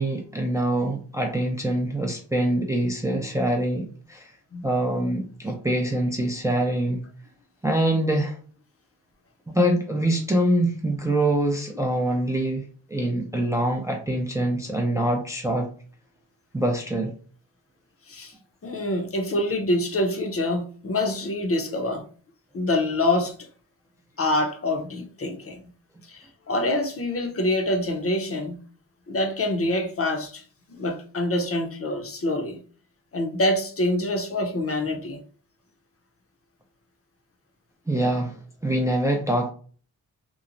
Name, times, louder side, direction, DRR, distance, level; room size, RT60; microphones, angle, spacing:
voice 1, 0.0-4.3 4.6-7.0 7.6-8.4 9.5-12.6 12.9-15.7 16.5-17.1 37.9-38.4 38.6-39.5, right 1 dB, 10° right, 0.4 m, -24 dB
voice 2, 18.6-22.0 22.5-23.3 24.2-25.6 26.1-28.6 29.1-32.6 33.1-35.2, left 1 dB, 40° left, 0.6 m, -26 dB
3.0 x 2.1 x 2.5 m
cardioid pair, 85°, 36 cm